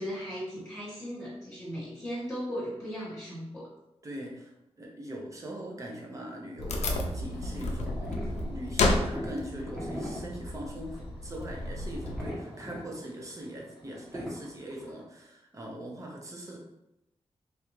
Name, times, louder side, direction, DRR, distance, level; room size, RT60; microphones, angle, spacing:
voice 1, 0.0-3.7, equal, 20° left, -9 dB, 1.1 m, -37 dB
voice 2, 4.0-16.6, right 1 dB, 30° right, -1 dB, 0.7 m, -41 dB
Wood, 6.6-12.3, left 2 dB, 75° left, 0.5 m, -32 dB
sound 1, 6.6-15.0, equal, 10° right, 1.0 m, -42 dB
3.3 x 2.5 x 3.0 m, 0.88 s
wide cardioid pair, 150°, 11 cm